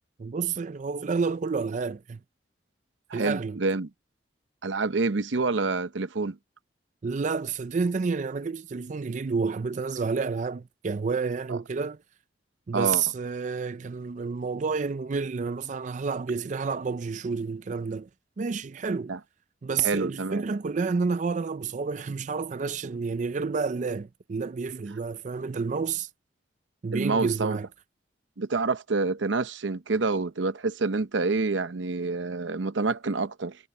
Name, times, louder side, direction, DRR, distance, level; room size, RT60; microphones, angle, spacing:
voice 1, 0.2-2.2 3.1-3.6 7.0-12.0 12.7-18.1 18.4-19.1 19.6-26.1 26.8-27.7, right 5 dB, 40° right, 0.4 m, -29 dB
voice 2, 3.1-3.9 4.6-6.4 11.5-11.6 12.7-13.0 19.1-19.2 19.8-20.4 26.9-27.6 28.4-33.6, right 3 dB, 85° right, 0.8 m, -27 dB
head